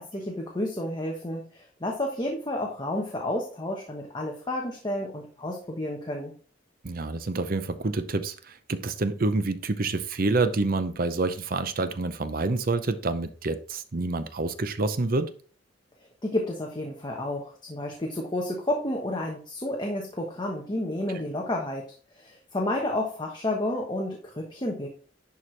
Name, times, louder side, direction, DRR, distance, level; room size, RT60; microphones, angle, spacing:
voice 1, 0.0-6.3 16.2-21.8 22.1-24.9, left 1 dB, 25° left, 0 dB, 1.2 m, -31 dB
voice 2, 6.8-15.3, right 3 dB, 50° right, 10 dB, 0.7 m, -27 dB
11.0 x 4.6 x 3.3 m, 0.42 s
head